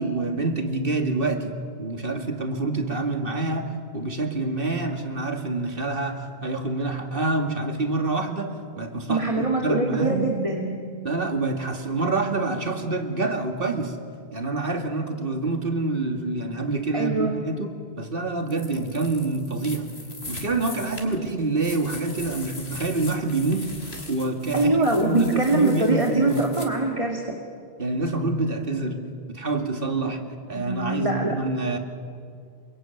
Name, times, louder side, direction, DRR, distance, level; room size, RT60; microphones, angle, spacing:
voice 1, 0.0-10.3 11.0-14.0 14.3-19.9 20.3-26.4 27.8-29.0 29.3-30.2 30.5-31.8, right 3 dB, 60° right, 5 dB, 2.5 m, -27 dB
voice 2, 9.1-10.9 16.9-17.3 24.5-27.4 30.5-31.4, right 2 dB, 35° right, 1 dB, 2.3 m, -23 dB
sound 1, 18.5-26.7, left 2 dB, 85° left, 3.5 m, -41 dB
28.5 x 22.5 x 9.3 m, 2.2 s
omnidirectional pair, 1.0 m